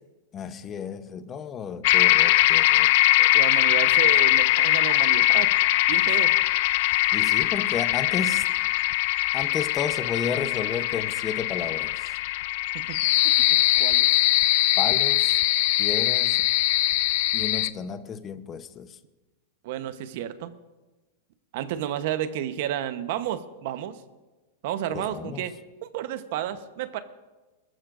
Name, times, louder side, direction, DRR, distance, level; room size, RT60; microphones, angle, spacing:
voice 1, 0.3-2.9 7.1-8.5 9.3-12.2 14.8-15.4 15.8-16.5 17.3-19.0 24.9-25.5, left 7 dB, 25° left, 0.9 m, -32 dB
sound 1, 1.8-17.7, left 17 dB, 60° left, 0.5 m, -21 dB
voice 2, 3.2-5.5 5.9-6.3 12.7-13.0 13.2-13.3 13.8-14.1 19.6-20.5 21.5-24.0 24.6-25.5 25.8-27.0, right 11 dB, 60° right, 1.0 m, -31 dB
21.0 x 14.0 x 2.6 m
hypercardioid pair, 130°, 0 cm